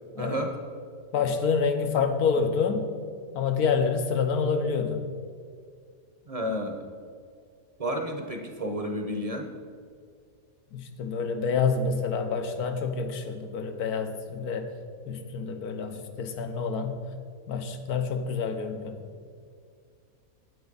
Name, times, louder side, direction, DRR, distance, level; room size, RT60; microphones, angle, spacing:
voice 1, 0.2-0.5 6.3-6.9 7.8-9.5, equal, 30° right, 3 dB, 0.8 m, -31 dB
voice 2, 1.1-2.8 3.3-5.0 10.7-14.7 15.1-17.0 17.5-19.1, left 5 dB, 85° left, 6 dB, 1.3 m, -27 dB
9.2 x 8.6 x 4.0 m, 2.2 s
omnidirectional pair, 1.6 m